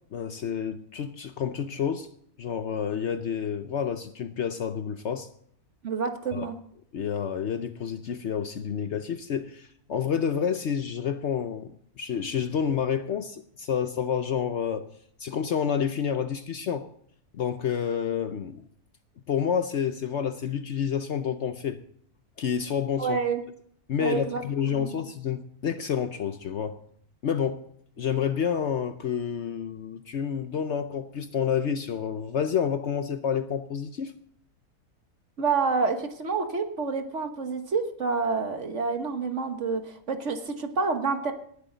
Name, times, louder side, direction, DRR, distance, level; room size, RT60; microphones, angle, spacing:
voice 1, 0.1-2.1 2.4-5.3 6.3-6.5 6.9-14.9 15.2-16.9 17.3-18.6 19.3-21.8 22.4-23.2 23.9-26.8 27.2-27.6 28.0-34.1, left 7 dB, 60° left, 0.9 m, -29 dB
voice 2, 5.8-6.5 23.0-23.4 24.0-24.4 24.7-24.9 35.4-41.3, right 4 dB, 55° right, 1.6 m, -28 dB
18.5 x 10.5 x 4.0 m
omnidirectional pair, 1.6 m